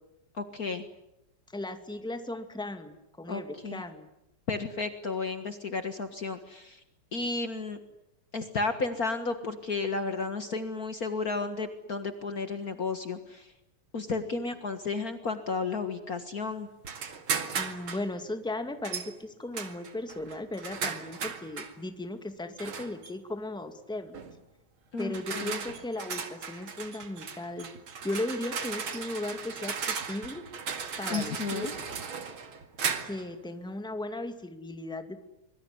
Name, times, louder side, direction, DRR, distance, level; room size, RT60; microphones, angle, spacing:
voice 1, 0.4-0.8 3.3-3.8 4.5-6.8 7.1-7.8 8.3-13.5 13.9-16.7 24.9-25.6 31.1-31.7, left 4 dB, 45° left, 8 dB, 2.0 m, -33 dB
voice 2, 1.5-4.1 17.5-24.1 25.0-27.7 28.0-29.8 30.1-30.5 31.0-31.7 33.0-35.2, left 2 dB, ahead, 7 dB, 2.2 m, -36 dB
sound 1, 16.8-18.1 18.8-19.1 19.5-21.8 22.6-23.1 24.1-24.4 25.0-33.3, right 6 dB, 70° right, 2.9 m, -36 dB
25.0 x 23.5 x 9.8 m, 0.87 s
omnidirectional pair, 2.4 m